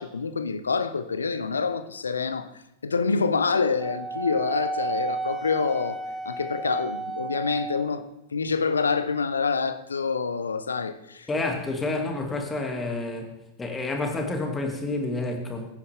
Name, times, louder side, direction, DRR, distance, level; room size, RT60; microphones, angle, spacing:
voice 1, 0.0-2.5 2.8-8.0 8.3-11.3, left 5 dB, 75° left, 12 dB, 0.7 m, -27 dB
Wind instrument woodwind instrument, 3.8-8.0, right 3 dB, 10° right, 1.2 m, -33 dB
voice 2, 11.3-13.3 13.6-15.7, left 2 dB, 15° left, 2 dB, 2.3 m, -29 dB
16.0 x 9.7 x 3.5 m, 0.93 s
figure-of-eight pair, 90°, 0 cm